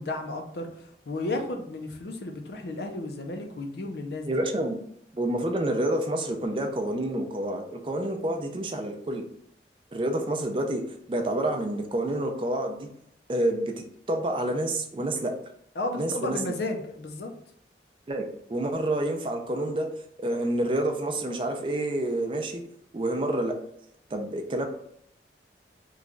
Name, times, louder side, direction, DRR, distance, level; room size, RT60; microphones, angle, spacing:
voice 1, 0.0-4.4 15.8-17.3, left 2 dB, 70° left, 4 dB, 0.5 m, -33 dB
voice 2, 4.2-4.8 5.1-9.2 9.9-10.8 11.1-12.9 13.3-15.3 16.0-16.4 18.1-18.2 18.5-19.9 20.2-22.6 22.9-23.5 24.1-24.7, right 1 dB, 30° right, 4 dB, 0.4 m, -28 dB
3.1 x 2.3 x 3.7 m, 0.69 s
head